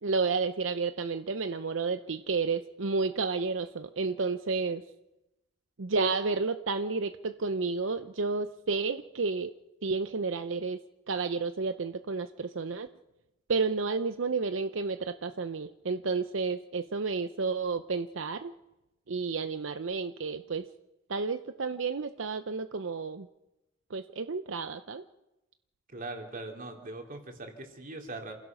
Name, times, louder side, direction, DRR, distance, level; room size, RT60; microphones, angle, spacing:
voice 1, 0.0-4.8 5.8-9.5 9.8-10.8 11.1-12.9 13.5-18.5 19.1-20.7 21.1-23.3 23.9-25.0, right 4 dB, 70° right, 10 dB, 0.7 m, -31 dB
voice 2, 25.9-28.3, right 2 dB, 45° right, 3 dB, 3.4 m, -41 dB
28.0 x 16.0 x 6.2 m, 0.96 s
head